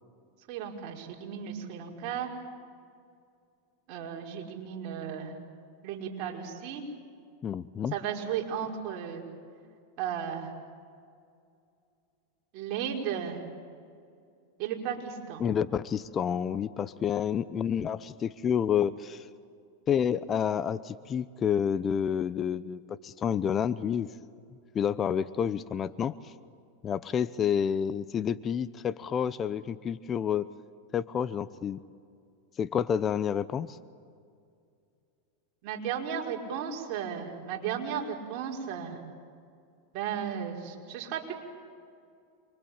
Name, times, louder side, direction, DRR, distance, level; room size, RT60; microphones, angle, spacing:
voice 1, 0.5-2.3 3.9-5.3 5.8-6.8 7.9-9.2 10.0-10.5 12.5-13.4 14.6-15.4 35.6-39.0 39.9-41.3, right 8 dB, 55° right, 0 dB, 5.4 m, -35 dB
voice 2, 7.4-7.9 15.4-19.3 19.9-24.1 24.7-26.3 26.8-30.5 30.9-31.8 32.6-33.8, left 8 dB, 30° left, 15 dB, 0.8 m, -29 dB
28.0 x 23.5 x 9.0 m, 2.3 s
hypercardioid pair, 105°, 0 cm